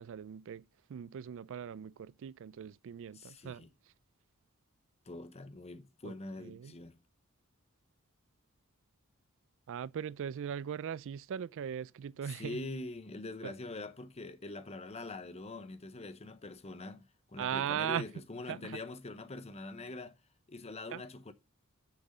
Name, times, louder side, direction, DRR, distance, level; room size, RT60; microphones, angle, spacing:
voice 1, 0.0-3.7 6.0-6.1 6.4-6.7 9.7-12.6 13.4-13.5 17.4-18.1 18.5-18.8 20.9-21.0, right 8 dB, 65° right, 0.3 m, -39 dB
voice 2, 3.1-3.7 5.1-7.0 12.3-20.2 20.5-21.3, left 2 dB, 30° left, 0.8 m, -44 dB
6.6 x 6.1 x 5.3 m
head